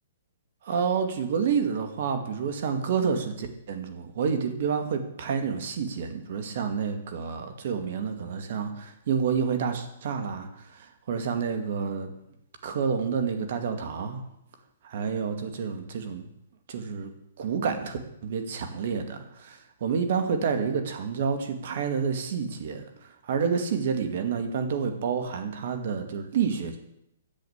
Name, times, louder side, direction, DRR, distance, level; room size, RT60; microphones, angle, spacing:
voice 1, 0.6-12.1 12.6-14.2 14.9-16.3 16.7-17.1 17.4-22.8 23.2-26.8, right 6 dB, 60° right, 7 dB, 2.2 m, -29 dB
10.5 x 7.9 x 8.1 m, 0.80 s
hypercardioid pair, 130°, 0 cm